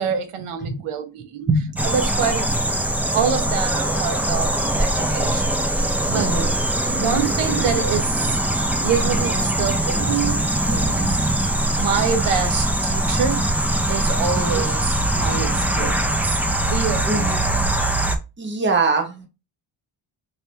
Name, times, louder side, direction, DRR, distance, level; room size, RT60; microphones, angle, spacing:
voice 1, 0.0-1.5 1.8-2.5 3.1-6.4 6.9-8.4 8.8-11.3 11.8-13.5 13.9-16.3 16.7-17.3, right 7 dB, 80° right, 0.9 m, -26 dB
voice 2, 1.5-1.8 6.2-6.5 14.4-14.7 17.1-17.4 18.4-19.3, right 3 dB, 20° right, 0.9 m, -23 dB
sound 1, 1.8-18.2, right 1 dB, 5° right, 0.4 m, -22 dB
3.4 x 2.9 x 4.3 m
cardioid pair, 135°, 50 cm